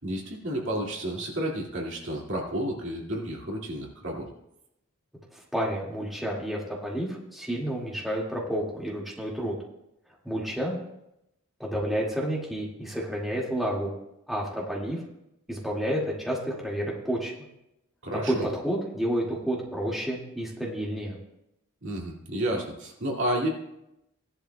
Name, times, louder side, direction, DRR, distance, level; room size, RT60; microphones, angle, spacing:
voice 1, 0.0-4.3 18.0-18.5 21.8-23.5, right 1 dB, 55° right, -1 dB, 2.1 m, -31 dB
voice 2, 5.5-9.5 10.2-10.8 11.6-13.9 14.3-15.0 15.5-17.3 18.1-21.2, equal, ahead, -4 dB, 2.0 m, -30 dB
17.5 x 11.0 x 2.3 m, 0.84 s
head